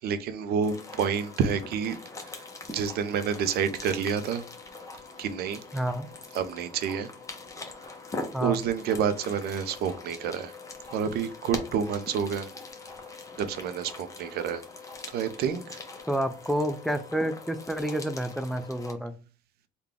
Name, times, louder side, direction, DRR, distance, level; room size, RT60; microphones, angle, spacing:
voice 1, 0.0-2.0 2.3-2.4 2.7-4.4 5.2-5.6 6.3-7.1 8.4-10.5 10.9-12.5 13.4-14.6 15.1-15.6, right 7 dB, 70° right, 0.5 m, -28 dB
sound 1, 0.6-18.9, left 3 dB, 20° left, 0.7 m, -42 dB
voice 2, 5.7-6.1 8.3-8.6 16.1-19.1, right 1 dB, ahead, 0.4 m, -29 dB
3.7 x 2.3 x 3.5 m
cardioid pair, 110°, 17 cm